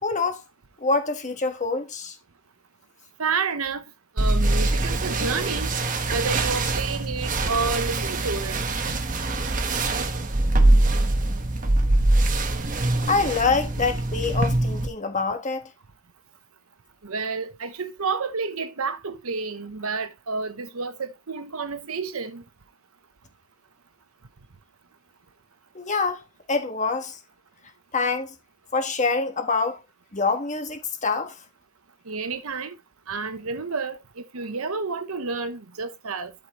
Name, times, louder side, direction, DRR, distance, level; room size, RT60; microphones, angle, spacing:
voice 1, 0.0-0.4 0.8-2.1 13.1-15.7 25.7-26.2 26.5-27.2 27.9-28.3 28.7-29.8 30.1-31.4, left 4 dB, 35° left, 1.4 m, -25 dB
voice 2, 3.2-3.8 4.2-5.7 6.1-8.6 17.0-22.4 32.1-32.8 33.1-36.3, right 4 dB, 70° right, 0.9 m, -30 dB
sound 1, 4.2-14.9, right 2 dB, 35° right, 1.2 m, -23 dB
12.5 x 4.9 x 3.0 m
head